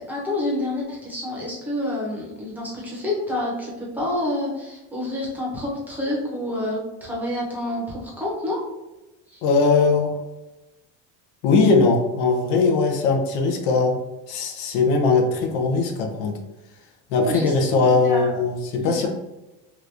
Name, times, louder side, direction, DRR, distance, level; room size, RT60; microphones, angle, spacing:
voice 1, 0.0-8.6 9.3-9.4 17.2-18.3 18.8-19.1, left 1 dB, 5° right, -5 dB, 0.8 m, -28 dB
voice 2, 9.4-10.1 11.4-13.9 14.3-16.4 17.1-19.1, left 4 dB, 70° left, 3 dB, 0.7 m, -20 dB
3.0 x 2.5 x 3.3 m, 1.0 s
cardioid pair, 160°, 37 cm